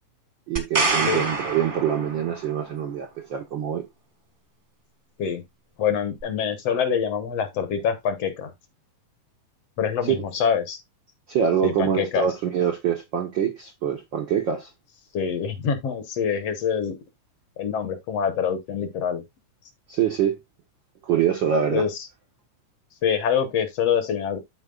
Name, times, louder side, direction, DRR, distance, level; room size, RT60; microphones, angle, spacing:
voice 1, 0.5-3.8 10.1-10.2 11.3-14.7 19.9-20.4 21.0-21.9, right 8 dB, 80° right, 1.0 m, -24 dB
sound 1, 0.6-2.5 6.2-6.3, right 3 dB, 35° right, 0.8 m, -26 dB
voice 2, 5.8-8.5 9.8-10.8 11.6-12.3 15.1-16.9 17.6-19.2 21.7-22.1 23.0-24.4, left 7 dB, 65° left, 1.9 m, -25 dB
13.0 x 4.5 x 2.3 m
omnidirectional pair, 3.4 m